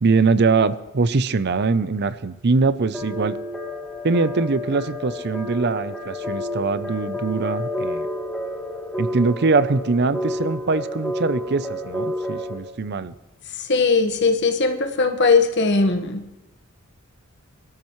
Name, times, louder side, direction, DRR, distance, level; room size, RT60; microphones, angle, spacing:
voice 1, 0.0-3.4 4.0-8.1 9.0-13.1, right 4 dB, 50° right, 14 dB, 0.6 m, -22 dB
sound 1, 2.9-12.5, left 1 dB, ahead, 2.9 m, -30 dB
voice 2, 13.6-16.2, left 4 dB, 55° left, 5 dB, 1.4 m, -19 dB
23.5 x 13.5 x 3.2 m, 1.0 s
head